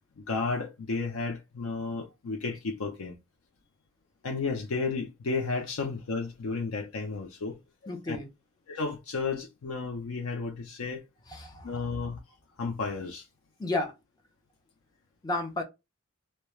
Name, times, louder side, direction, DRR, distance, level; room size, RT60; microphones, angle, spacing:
voice 1, 0.2-3.2 4.2-7.6 7.8-8.2 8.7-11.1 11.6-12.2 12.6-13.3, left 4 dB, 75° left, 0.5 m, -33 dB
voice 2, 7.9-8.3 11.3-11.7 13.6-13.9 15.2-15.6, left 2 dB, 20° left, 0.6 m, -32 dB
2.3 x 2.1 x 2.9 m
head